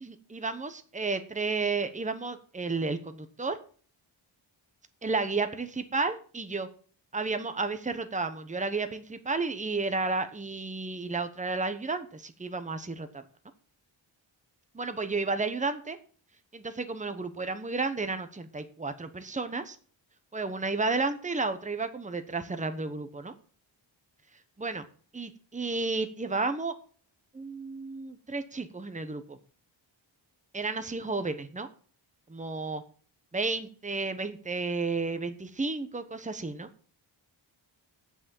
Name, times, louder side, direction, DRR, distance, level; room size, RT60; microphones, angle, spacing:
voice 1, 0.0-3.6 5.0-6.7 7.1-13.2 14.7-16.0 16.5-19.8 20.3-23.3 24.6-24.8 25.1-26.7 27.3-29.4 30.5-31.7 32.3-32.8 33.3-36.7, right 3 dB, 15° right, 9 dB, 1.0 m, -32 dB
9.9 x 6.3 x 7.2 m, 0.43 s
wide cardioid pair, 145°, 48 cm